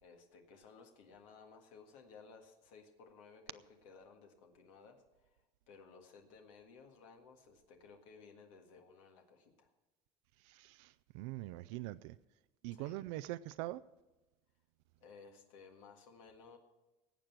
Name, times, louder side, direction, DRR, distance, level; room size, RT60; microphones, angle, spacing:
voice 1, 0.0-5.4 5.7-9.7 12.7-13.0 15.0-16.6, left 5 dB, 90° left, 1.7 m, -58 dB
voice 2, 10.4-12.2 12.6-13.8, right 16 dB, 85° right, 0.4 m, -43 dB
18.0 x 7.6 x 5.9 m
supercardioid pair, 105°, 16 cm